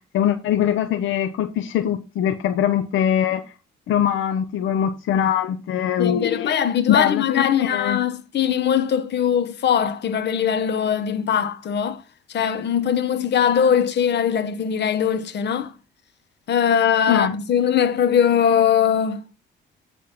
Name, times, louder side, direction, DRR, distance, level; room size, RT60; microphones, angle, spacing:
voice 1, 0.0-3.4 3.9-6.5 6.9-8.0 17.1-17.3, left 10 dB, 80° left, 0.8 m, -22 dB
voice 2, 6.0-12.0 12.3-15.7 16.5-19.2, left 8 dB, 60° left, 1.1 m, -21 dB
9.7 x 3.5 x 5.8 m
cardioid pair, 90°, 20 cm